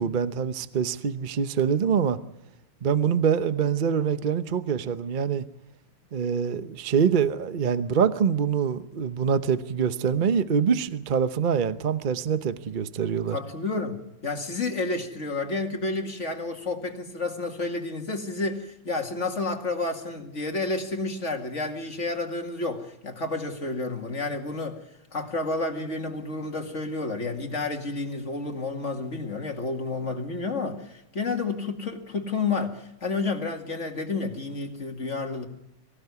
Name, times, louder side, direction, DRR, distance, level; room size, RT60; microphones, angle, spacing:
voice 1, 0.0-2.2 2.8-5.4 6.1-13.4, right 7 dB, 75° right, 0.4 m, -25 dB
voice 2, 13.3-24.8 25.1-35.5, left 3 dB, 35° left, 2.3 m, -30 dB
24.0 x 16.0 x 9.5 m
omnidirectional pair, 2.4 m